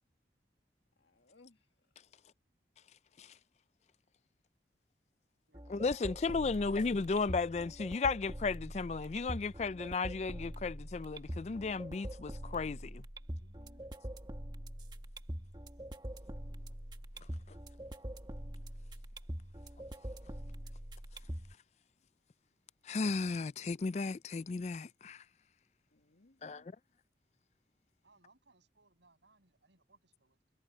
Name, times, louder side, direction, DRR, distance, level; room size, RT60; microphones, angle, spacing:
voice 1, 1.0-1.7 13.2-13.9 25.9-26.7, left 2 dB, 80° left, 1.8 m, -65 dB
sound 1, 5.5-21.5, equal, 25° right, 1.5 m, -44 dB
voice 2, 5.7-13.0 22.9-25.2 26.4-26.6, left 4 dB, 40° left, 0.3 m, -34 dB
voice 3, 28.0-30.5, right 3 dB, 90° right, 6.7 m, -68 dB
head